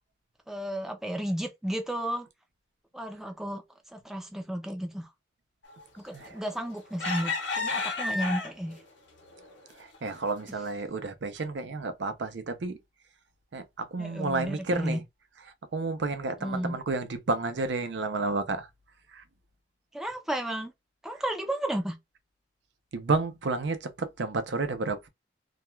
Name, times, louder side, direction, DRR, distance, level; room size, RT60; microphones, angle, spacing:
voice 1, 0.5-2.3 2.9-3.6 3.9-5.1 6.0-8.8 14.0-15.0 16.4-16.8 19.9-20.7 21.0-22.0, equal, ahead, 0.4 m, -33 dB
sound 1, 6.2-6.5 7.0-8.8 9.4-9.5 9.9-10.2, left 3 dB, 75° left, 0.8 m, -31 dB
voice 2, 9.8-12.8 13.5-15.0 15.4-18.7 19.1-19.2 22.9-25.1, right 3 dB, 75° right, 0.5 m, -31 dB
2.3 x 2.2 x 3.0 m
head